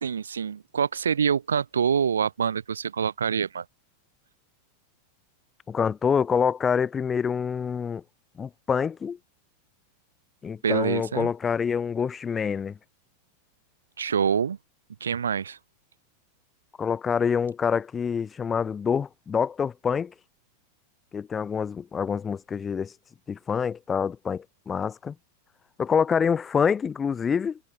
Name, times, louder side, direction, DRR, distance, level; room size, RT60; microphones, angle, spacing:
voice 1, 0.0-3.6 10.6-11.3 14.0-14.6 15.0-15.6, right 7 dB, 70° right, 1.7 m, -26 dB
voice 2, 5.7-8.0 8.4-9.2 10.4-12.8 16.8-20.1 21.1-22.9 23.3-25.1 25.8-27.6, left 6 dB, 20° left, 3.2 m, -26 dB
figure-of-eight pair, 90°, 0 cm